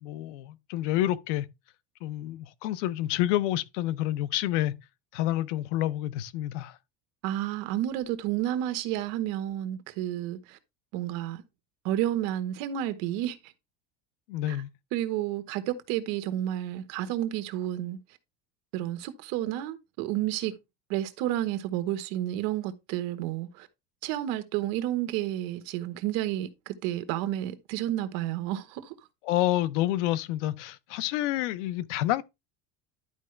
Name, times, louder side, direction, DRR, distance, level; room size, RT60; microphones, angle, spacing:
voice 1, 0.0-1.5 2.0-4.7 5.1-6.8 14.3-14.7 29.2-32.2, left 14 dB, 80° left, 0.7 m, -28 dB
voice 2, 7.2-10.6 10.9-11.4 11.8-13.5 14.5-14.6 14.9-18.0 18.7-20.5 20.9-23.7 24.0-28.9, right 13 dB, 65° right, 1.2 m, -31 dB
11.0 x 4.8 x 3.2 m
cardioid pair, 155°, 36 cm